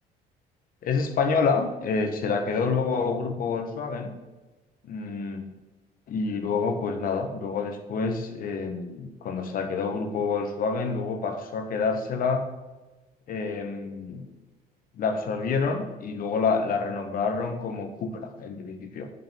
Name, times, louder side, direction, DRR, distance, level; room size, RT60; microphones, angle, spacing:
voice 1, 0.8-4.1 4.8-5.5 6.1-12.5 13.3-14.3 15.0-19.1, left 4 dB, 55° left, 5 dB, 1.5 m, -28 dB
10.5 x 5.4 x 7.7 m, 1.2 s
cardioid pair, 110°, 17 cm